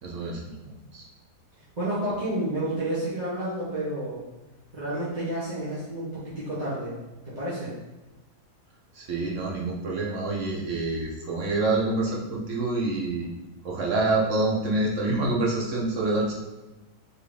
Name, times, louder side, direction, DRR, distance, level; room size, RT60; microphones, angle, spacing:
voice 1, 0.0-0.4 0.9-1.0 8.9-13.3 13.6-16.3, right 2 dB, 55° right, -3 dB, 1.0 m, -26 dB
voice 2, 1.8-4.2 4.7-6.9 7.4-7.7, right 1 dB, 30° right, -10 dB, 1.1 m, -30 dB
4.6 x 3.1 x 3.4 m, 1.1 s
omnidirectional pair, 1.8 m